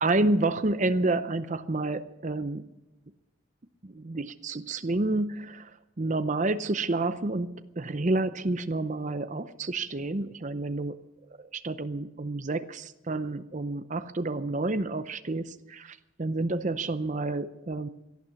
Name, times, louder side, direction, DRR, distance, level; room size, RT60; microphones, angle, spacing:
voice 1, 0.0-2.7 3.8-11.0 11.5-17.9, right 2 dB, 35° right, 10 dB, 0.6 m, -29 dB
17.5 x 12.0 x 7.0 m, 0.98 s
head